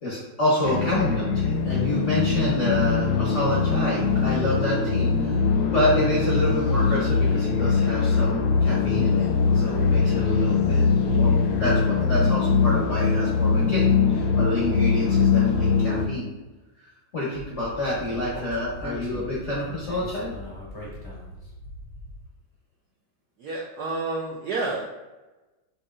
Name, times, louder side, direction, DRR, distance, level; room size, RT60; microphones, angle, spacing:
voice 1, 0.0-5.4 5.7-9.3 9.5-16.3 16.8-20.3, left 1 dB, 60° left, -6 dB, 0.8 m, -28 dB
sound 1, 0.6-16.1, left 5 dB, 75° left, 1.2 m, -22 dB
Speech, 17.3-22.2, left 1 dB, 30° left, 0.4 m, -40 dB
voice 2, 23.4-24.9, right 3 dB, 80° right, -3 dB, 0.9 m, -29 dB
5.2 x 2.7 x 2.4 m, 1.1 s
omnidirectional pair, 2.2 m